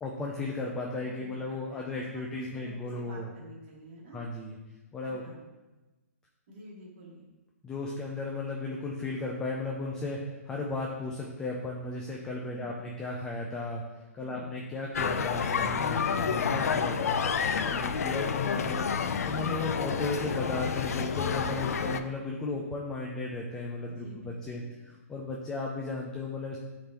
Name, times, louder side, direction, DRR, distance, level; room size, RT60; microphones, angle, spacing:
voice 1, 0.0-3.3 4.1-4.5 4.9-5.2 7.6-10.2 10.5-13.8 14.1-17.2 17.6-18.9 19.2-26.6, left 2 dB, 5° left, -2 dB, 0.3 m, -35 dB
voice 2, 0.9-2.2 2.5-4.2 5.0-5.4 6.5-7.3 12.5-12.7 14.2-14.5 16.0-16.3 17.7-18.0 21.5-21.8 23.9-25.0, right 1 dB, 40° right, -4 dB, 1.9 m, -49 dB
sound 1, 14.9-22.0, left 6 dB, 80° left, 0.4 m, -29 dB
9.8 x 3.8 x 2.9 m, 1.1 s
hypercardioid pair, 170°, 8 cm